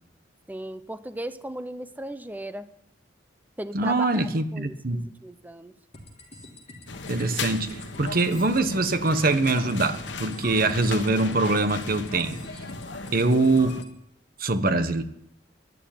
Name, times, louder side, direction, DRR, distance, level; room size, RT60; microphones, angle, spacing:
voice 1, 0.5-2.7 3.6-5.7, right 1 dB, 10° right, 12 dB, 0.8 m, -37 dB
voice 2, 3.7-5.0 7.1-12.4 13.1-13.8 14.4-15.0, right 2 dB, 55° right, 10 dB, 1.3 m, -23 dB
sound 1, 5.9-13.9, left 1 dB, 35° left, 3.3 m, -46 dB
sound 2, 6.9-13.8, left 4 dB, 80° left, 1.2 m, -37 dB
11.5 x 11.5 x 9.3 m, 0.76 s
head